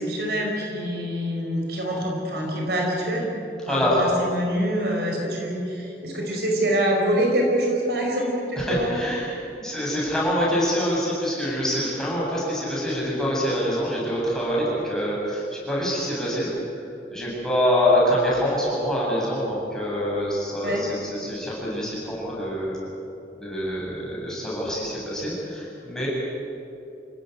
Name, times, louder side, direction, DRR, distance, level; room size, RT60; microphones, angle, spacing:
voice 1, 0.0-3.3 3.7-9.0 20.6-20.8, right 1 dB, 65° right, 0 dB, 5.4 m, -25 dB
voice 2, 3.7-4.0 8.6-16.5 16.8-22.8 23.4-26.1, equal, 5° left, -6 dB, 7.8 m, -25 dB
27.5 x 17.0 x 9.5 m, 2.7 s
head